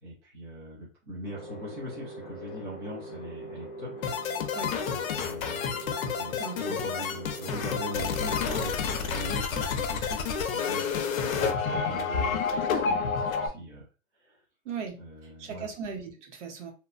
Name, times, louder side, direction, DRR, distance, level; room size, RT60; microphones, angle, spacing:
voice 1, 0.0-3.9 4.8-5.6 6.1-13.9 14.1-14.4 15.0-15.7, equal, 20° right, -7 dB, 0.5 m, -41 dB
sound 1, 1.2-9.3, left 1 dB, 40° left, 0.4 m, -41 dB
sound 2, 4.0-13.5, left 6 dB, 80° left, 0.6 m, -29 dB
voice 2, 14.7-15.0 15.4-16.7, right 6 dB, 60° right, 3 dB, 0.8 m, -37 dB
2.8 x 2.1 x 2.4 m, 0.33 s
hypercardioid pair, 175°, 41 cm